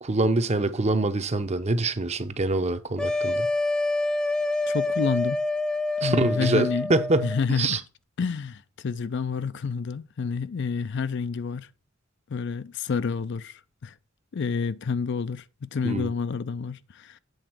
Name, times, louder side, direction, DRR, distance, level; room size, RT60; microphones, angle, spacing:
voice 1, 0.0-3.5 6.0-7.8 15.8-16.1, right 2 dB, 35° right, 0.7 m, -25 dB
sound 1, 3.0-7.4, left 2 dB, 5° left, 0.5 m, -27 dB
voice 2, 4.7-5.4 6.0-6.9 7.2-7.8 8.2-11.7 12.3-13.9 14.3-17.2, left 5 dB, 60° left, 0.4 m, -29 dB
8.0 x 3.9 x 6.0 m
head